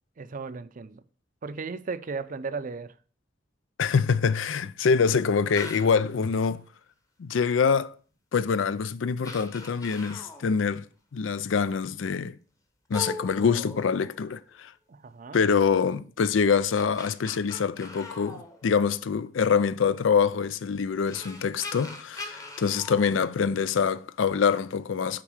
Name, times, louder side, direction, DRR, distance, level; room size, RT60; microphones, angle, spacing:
voice 1, 0.2-1.0 1.4-2.9 14.9-15.4, right 4 dB, 45° right, 0.5 m, -35 dB
voice 2, 3.8-6.6 7.2-7.9 8.3-10.8 11.1-12.4 12.9-14.7 15.3-25.2, left 6 dB, 75° left, 0.4 m, -25 dB
sound 1, 5.5-6.1 8.2-8.3 8.9-9.0 9.2-10.6 12.9-14.5 16.5-19.2 20.6-20.7 21.1-23.9, left 2 dB, 20° left, 1.0 m, -41 dB
6.0 x 4.5 x 6.4 m
head